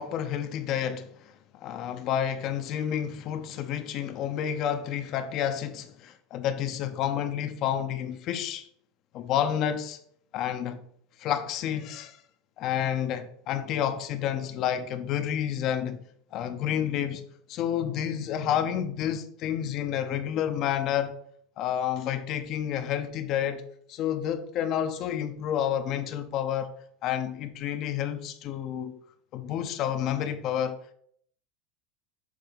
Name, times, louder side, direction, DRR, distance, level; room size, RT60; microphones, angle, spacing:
voice 1, 0.0-1.3 1.6-8.7 9.1-10.0 10.3-10.8 11.2-12.2 12.6-16.0 16.3-17.2 17.5-21.2 21.6-23.6 23.9-26.7 27.0-29.0 29.3-30.9, left 10 dB, 45° left, 0.6 m, -30 dB
6.6 x 3.4 x 5.0 m
supercardioid pair, 150°, 0 cm